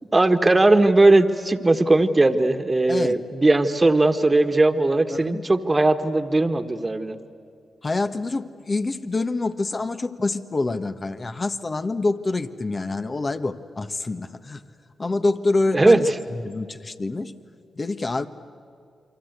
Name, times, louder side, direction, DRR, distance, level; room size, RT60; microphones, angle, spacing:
voice 1, 0.1-7.2 15.7-16.0, right 2 dB, 30° right, 8 dB, 1.7 m, -18 dB
voice 2, 2.9-3.2 5.1-5.5 7.8-14.6 15.0-17.3 17.7-18.3, left 3 dB, 40° left, 9 dB, 1.4 m, -26 dB
29.0 x 24.0 x 8.3 m, 2.4 s
supercardioid pair, 45°, 0 cm